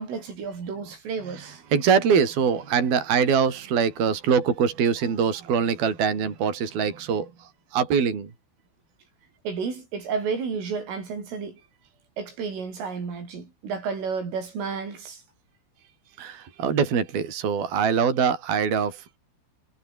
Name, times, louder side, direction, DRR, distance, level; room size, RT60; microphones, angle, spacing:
voice 1, 0.0-1.6 9.5-11.6 12.2-15.2, right 5 dB, 80° right, 9.5 m, -31 dB
voice 2, 1.3-8.3 16.2-19.2, right 6 dB, 50° right, 6.3 m, -23 dB
omnidirectional pair, 5.7 m